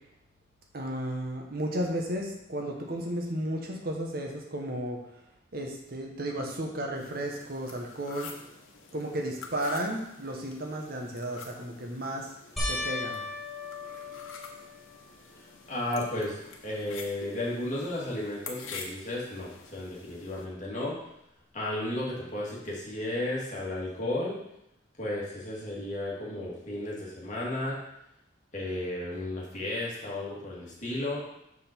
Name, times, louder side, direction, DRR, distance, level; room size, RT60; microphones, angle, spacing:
voice 1, 0.7-5.0 5.5-8.3 8.9-12.3 12.7-13.2, right 1 dB, 50° right, 1 dB, 1.0 m, -33 dB
sound 1, 6.9-20.4, left 4 dB, 85° left, 1.1 m, -47 dB
sound 2, 12.6-15.2 15.8-16.3 16.7-16.8 20.0-20.1, left 2 dB, ahead, 1.8 m, -36 dB
voice 2, 15.7-16.4 16.6-21.0 21.5-24.4 25.0-27.8 28.5-31.2, left 1 dB, 40° left, -5 dB, 2.0 m, -33 dB
6.4 x 5.5 x 4.4 m, 0.80 s
head